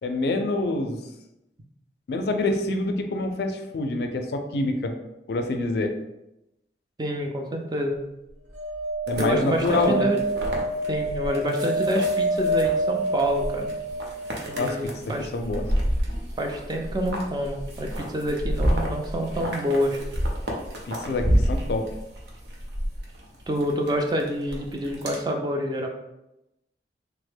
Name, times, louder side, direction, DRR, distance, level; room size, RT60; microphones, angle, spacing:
voice 1, 0.0-1.0 2.1-4.9 5.3-5.9 9.1-10.1 14.6-14.9 15.3-15.6 20.9-21.9, left 2 dB, 60° left, 5 dB, 0.3 m, -26 dB
voice 2, 7.0-8.0 9.2-10.2 10.9-13.7 14.5-15.3 16.4-20.0 23.5-25.9, equal, 25° right, 2 dB, 0.3 m, -27 dB
sound 1, 8.5-14.7 17.0-17.1 17.3-17.4, right 1 dB, 85° right, 1.0 m, -27 dB
sound 2, 9.1-25.2, equal, 65° right, 0.6 m, -30 dB
3.3 x 2.1 x 3.3 m, 0.91 s
head